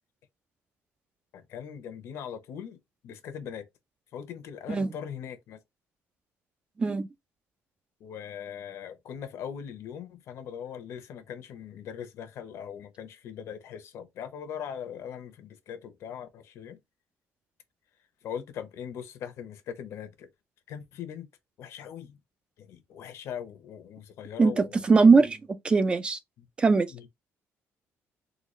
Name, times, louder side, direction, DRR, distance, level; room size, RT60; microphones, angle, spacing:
voice 1, 1.3-3.7 4.1-5.6 8.0-16.8 18.2-20.3 20.7-21.3 21.6-22.2 22.6-24.8 26.4-26.5 26.9-27.1, left 8 dB, 60° left, 0.8 m, -40 dB
voice 2, 24.4-25.4 25.6-26.2 26.6-26.9, right 4 dB, 20° right, 0.3 m, -20 dB
3.8 x 2.3 x 3.0 m
cardioid pair, 170°, 5 cm